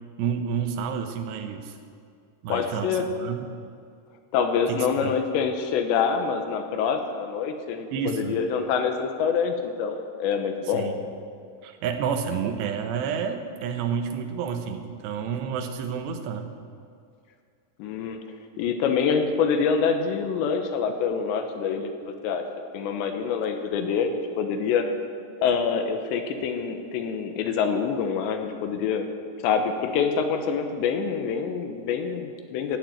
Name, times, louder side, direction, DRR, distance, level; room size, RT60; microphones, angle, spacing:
voice 1, 0.2-1.7 2.4-3.4 4.7-5.1 7.9-8.4 10.7-11.0 11.6-16.5, right 7 dB, 75° right, 5 dB, 3.2 m, -30 dB
voice 2, 2.5-3.1 4.3-10.9 17.8-18.2 18.6-22.4 22.7-24.9 25.4-29.1 29.4-32.8, left 6 dB, 85° left, 6 dB, 3.2 m, -26 dB
16.0 x 7.8 x 9.3 m, 2.3 s
omnidirectional pair, 5.1 m